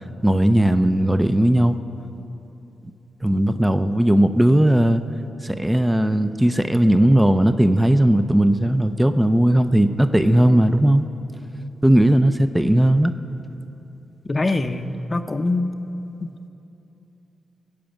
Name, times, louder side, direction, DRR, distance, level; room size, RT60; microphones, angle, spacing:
voice 1, 0.2-1.8 3.2-5.0 5.4-11.1 11.8-13.1, right 1 dB, 10° right, 9 dB, 0.6 m, -17 dB
voice 2, 14.2-15.7 16.2-16.5, left 2 dB, 30° left, 8 dB, 0.7 m, -24 dB
18.0 x 7.0 x 9.0 m, 3.0 s
cardioid pair, 60°, 0 cm